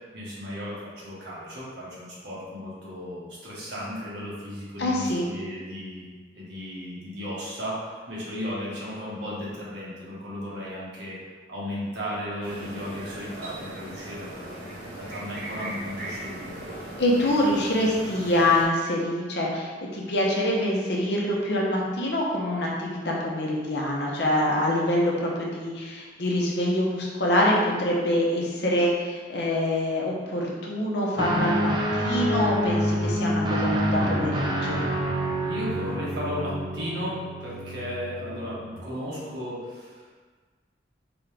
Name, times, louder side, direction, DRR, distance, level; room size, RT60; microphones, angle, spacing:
voice 1, 0.1-6.1 6.3-11.2 11.5-14.6 14.9-16.7 35.4-40.2, equal, 70° right, -7 dB, 1.4 m, -35 dB
voice 2, 4.8-5.2 17.0-34.8, left 1 dB, 65° left, -3 dB, 0.9 m, -25 dB
sound 1, 12.4-18.6, right 1 dB, 50° right, 1.0 m, -38 dB
Guitar, 31.2-38.8, equal, 25° right, 0.5 m, -27 dB
3.9 x 3.6 x 3.4 m, 1.4 s
head